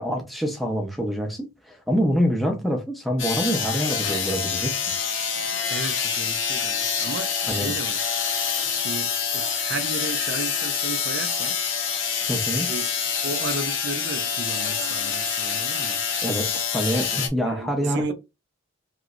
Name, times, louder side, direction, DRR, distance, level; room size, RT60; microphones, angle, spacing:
voice 1, 0.0-4.8 7.5-7.7 12.3-12.7 16.2-16.5 16.7-18.1, equal, ahead, 0.7 m, -26 dB
sound 1, 3.2-17.3, left 6 dB, 65° left, 0.7 m, -26 dB
voice 2, 5.7-8.0 8.7-11.5 12.7-12.9 13.2-16.0 17.4-18.1, right 3 dB, 55° right, 0.6 m, -34 dB
3.1 x 2.9 x 2.5 m
head